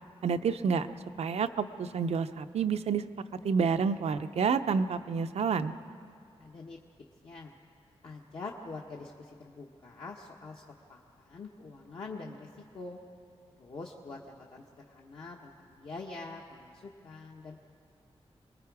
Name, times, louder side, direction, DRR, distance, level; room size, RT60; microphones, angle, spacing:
voice 1, 0.2-0.9 1.2-3.0 3.4-5.7, right 6 dB, 80° right, 9 dB, 0.6 m, -29 dB
voice 2, 6.4-6.8 7.2-7.5 8.0-10.6 10.9-12.5 12.7-13.0 13.6-14.2 14.5-17.6, left 3 dB, 55° left, -2 dB, 1.2 m, -44 dB
27.0 x 20.5 x 4.8 m, 2.4 s
wide cardioid pair, 160°, 11 cm